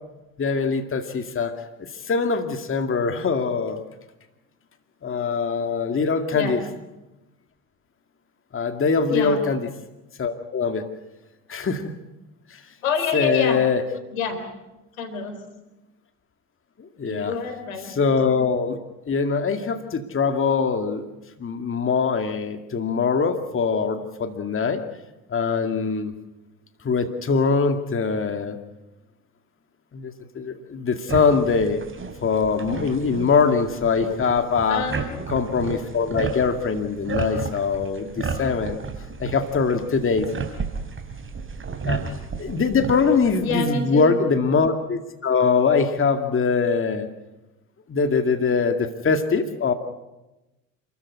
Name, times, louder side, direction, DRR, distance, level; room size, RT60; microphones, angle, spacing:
voice 1, 0.4-3.8 5.0-6.6 8.5-9.6 10.2-10.8 11.5-11.9 12.5-12.6 13.1-13.8 16.8-17.4 17.9-18.8 19.1-21.1 21.4-24.8 25.3-26.1 26.8-28.6 29.9-31.8 32.2-34.9 35.3-38.8 39.2-40.3 41.9-42.0 42.4-47.1 47.9-49.7, left 5 dB, 30° left, 7 dB, 2.2 m, -22 dB
voice 2, 9.1-9.4 12.8-13.6 14.1-14.4 14.9-15.4 17.0-17.9 34.7-35.1 43.4-44.2, left 5 dB, 85° left, 8 dB, 4.0 m, -27 dB
sound 1, 31.1-43.5, right 5 dB, 30° right, 3.9 m, -33 dB
28.5 x 14.0 x 9.8 m, 1.0 s
hypercardioid pair, 70°, 40 cm